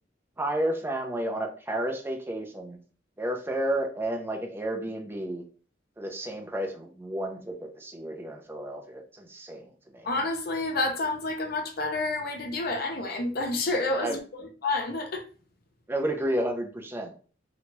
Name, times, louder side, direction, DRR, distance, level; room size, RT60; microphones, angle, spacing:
voice 1, 0.4-2.8 3.2-5.4 6.0-10.1 14.0-14.2 15.9-17.2, right 1 dB, 10° right, 0.5 m, -31 dB
voice 2, 10.0-15.2, left 2 dB, 55° left, 0.6 m, -29 dB
2.9 x 2.3 x 2.9 m
head